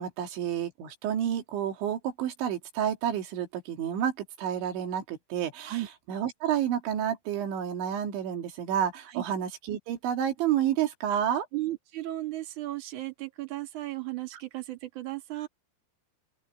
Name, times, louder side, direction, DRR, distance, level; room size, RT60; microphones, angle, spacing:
voice 1, 0.0-4.1 4.4-11.5, right 9 dB, 85° right, 4.7 m, -30 dB
voice 2, 11.5-15.5, right 16 dB, 50° right, 3.8 m, -35 dB
open air
omnidirectional pair, 5.1 m